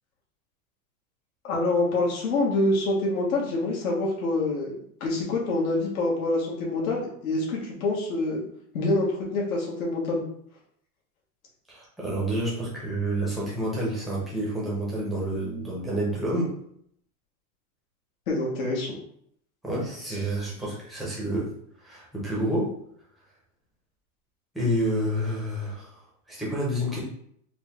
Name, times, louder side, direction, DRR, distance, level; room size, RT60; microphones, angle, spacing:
voice 1, 1.4-4.7 5.0-8.4 8.7-10.2 18.3-19.0, left 2 dB, 75° left, -2 dB, 1.4 m, -26 dB
voice 2, 11.7-16.6 19.6-21.5 21.8-22.7 24.5-26.0 26.3-27.0, right 1 dB, ahead, -6 dB, 0.6 m, -29 dB
4.5 x 2.2 x 3.4 m, 0.67 s
supercardioid pair, 160°, 43 cm